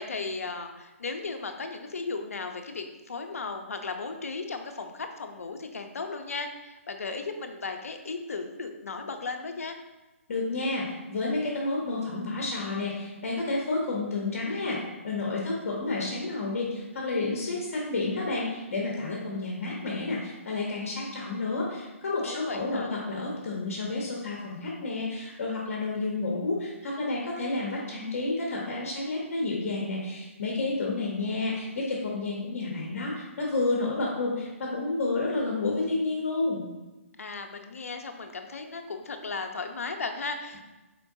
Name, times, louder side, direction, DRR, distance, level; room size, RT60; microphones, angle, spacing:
voice 1, 0.0-9.8 22.3-22.9 37.2-40.6, left 4 dB, 85° left, 6 dB, 0.6 m, -36 dB
voice 2, 10.3-36.6, left 3 dB, 65° left, -3 dB, 1.0 m, -30 dB
4.5 x 4.3 x 2.7 m, 1.1 s
hypercardioid pair, 145°, 8 cm